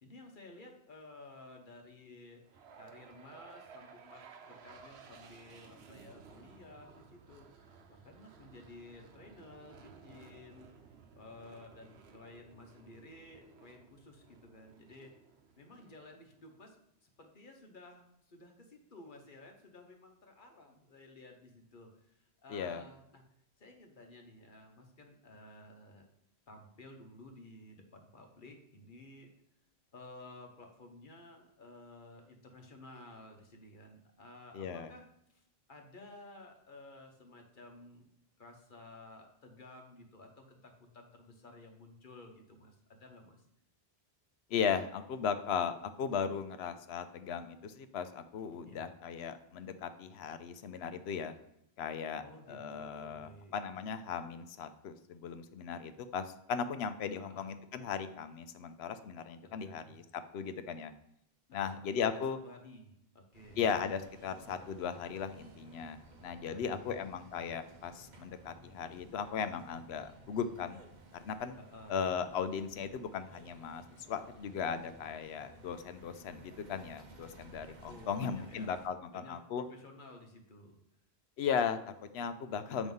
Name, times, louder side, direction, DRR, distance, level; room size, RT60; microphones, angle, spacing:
voice 1, 0.0-2.4 2.7-15.1 15.6-23.2 23.6-26.1 26.5-29.3 29.9-35.1 35.3-38.0 38.4-43.4 48.6-48.9 52.2-53.5 57.2-57.5 59.4-60.0 61.5-63.6 66.5-67.0 71.6-72.2 77.8-78.7 79.1-80.8 82.8-82.9, left 2 dB, 50° left, 3 dB, 1.1 m, -54 dB
sound 1, 2.5-16.6, right 5 dB, 75° right, 0.9 m, -57 dB
voice 2, 22.5-22.8 34.5-34.9 44.5-51.3 51.8-60.9 61.5-62.4 63.6-70.8 71.2-71.6 71.9-73.8 74.1-79.6 81.4-82.9, left 7 dB, 75° left, 10 dB, 0.8 m, -37 dB
sound 2, 63.3-78.9, right 3 dB, 50° right, 0.8 m, -57 dB
7.7 x 3.1 x 5.3 m, 0.76 s
omnidirectional pair, 1.1 m